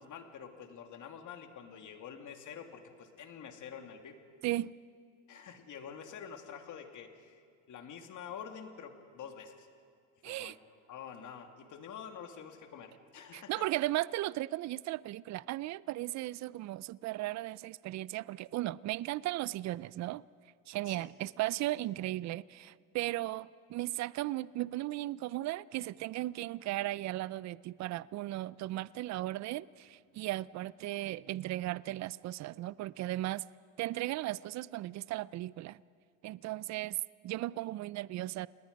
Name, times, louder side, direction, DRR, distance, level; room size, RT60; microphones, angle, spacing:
voice 1, 0.0-4.1 5.3-7.4 7.7-9.7 10.3-10.5 10.9-13.6 20.8-21.1, left 7 dB, 45° left, 2.5 m, -47 dB
voice 2, 10.2-10.5 13.3-20.2 20.7-33.4 33.8-35.8 36.2-37.0 37.2-38.5, right 16 dB, 45° right, 0.5 m, -36 dB
30.0 x 19.5 x 5.3 m
supercardioid pair, 100°, 41 cm